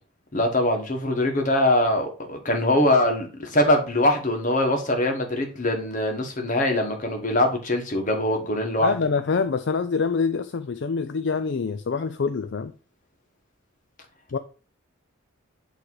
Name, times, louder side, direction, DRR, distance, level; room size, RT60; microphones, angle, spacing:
voice 1, 0.3-8.9, left 1 dB, 40° left, 1.5 m, -22 dB
voice 2, 8.8-12.7 14.3-14.4, left 5 dB, 55° left, 0.4 m, -25 dB
8.5 x 3.2 x 4.8 m
head